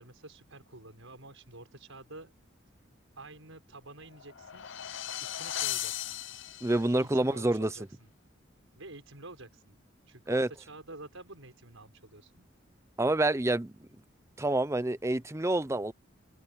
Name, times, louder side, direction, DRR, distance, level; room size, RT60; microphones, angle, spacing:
voice 1, 0.0-2.3 3.2-4.7 5.2-6.2 6.7-8.1 8.8-9.8 10.1-12.5, right 2 dB, 85° right, 5.9 m, -49 dB
sound 1, 4.0-7.0, left 12 dB, 65° left, 0.8 m, -37 dB
voice 2, 6.6-7.7 10.3-10.5 13.0-13.7 14.4-15.9, right 1 dB, 15° right, 0.6 m, -27 dB
head